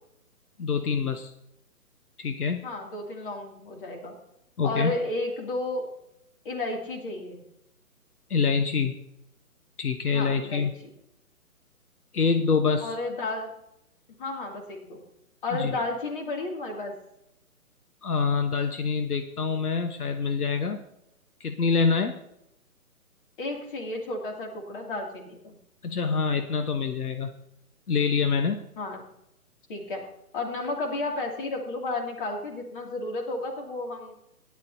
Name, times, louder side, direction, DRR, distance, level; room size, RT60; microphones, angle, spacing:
voice 1, 0.6-1.3 2.2-2.7 4.6-4.9 8.3-9.0 9.8-10.7 12.1-12.9 15.5-15.7 18.0-20.8 21.4-22.2 25.8-27.3 27.9-28.7, left 5 dB, 75° left, 6 dB, 1.1 m, -25 dB
voice 2, 2.6-4.1 4.6-5.9 6.4-7.4 10.1-10.7 12.8-13.5 14.2-15.0 15.4-16.9 23.4-25.6 28.8-29.0 29.7-30.1 30.3-34.1, left 2 dB, 35° left, 2 dB, 2.5 m, -32 dB
16.5 x 11.0 x 2.7 m, 0.81 s
figure-of-eight pair, 145°, 45 cm